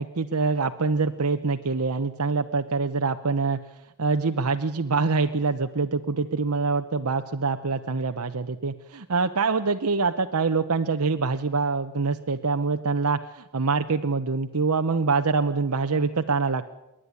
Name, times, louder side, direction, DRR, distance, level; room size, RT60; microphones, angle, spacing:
voice 1, 0.0-3.6 4.0-16.7, right 4 dB, 80° right, 6 dB, 0.9 m, -25 dB
28.0 x 11.5 x 9.9 m, 0.95 s
head